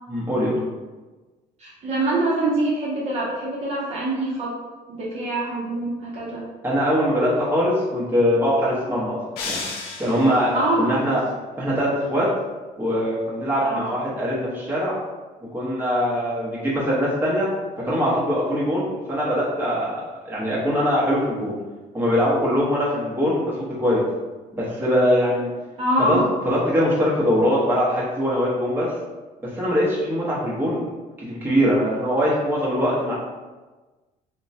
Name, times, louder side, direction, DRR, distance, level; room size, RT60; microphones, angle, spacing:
voice 1, 0.1-0.6 6.6-9.6 10.0-11.2 11.6-12.3 12.8-15.0 15.5-17.5 17.8-21.5 21.9-24.0 24.6-25.5 26.0-28.9 29.5-30.8 31.2-33.1, equal, 15° right, -7 dB, 0.9 m, -22 dB
voice 2, 1.6-4.5 4.9-6.4 10.5-10.9 13.6-13.8 25.8-26.3, right 1 dB, 40° right, -6 dB, 0.8 m, -24 dB
sound 1, 9.4-10.6, left 4 dB, 85° left, 0.5 m, -32 dB
2.9 x 2.2 x 2.6 m, 1.2 s
cardioid pair, 115°, 16 cm